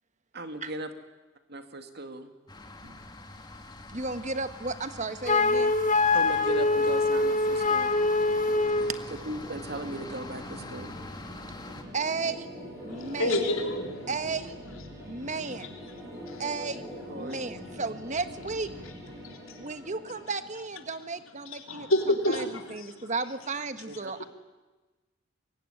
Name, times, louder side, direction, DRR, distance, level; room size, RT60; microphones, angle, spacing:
voice 1, 0.3-0.9 1.5-2.3 2.8-3.0 6.1-8.0 8.7-8.9 9.2-11.0 17.1-17.4 23.9-24.1, right 2 dB, 50° right, 7 dB, 2.3 m, -38 dB
sound 1, 2.5-11.8, left 2 dB, 20° left, 2.3 m, -44 dB
voice 2, 3.9-5.7 11.9-12.5 12.8-13.5 14.1-14.6 15.0-15.8 16.4-16.8 17.1-18.7 19.6-24.2, right 4 dB, 35° right, 10 dB, 1.3 m, -34 dB
Wind instrument woodwind instrument, 5.3-9.0, left 3 dB, 35° left, 1.2 m, -24 dB
sound 2, 6.6-21.5, equal, 15° right, 7.0 m, -45 dB
voice 3, 12.8-14.1 15.0-15.3 16.2-16.4 19.3-19.6 21.7-22.9, left 1 dB, 80° left, 2 dB, 3.2 m, -29 dB
25.5 x 22.5 x 10.0 m, 1.2 s
head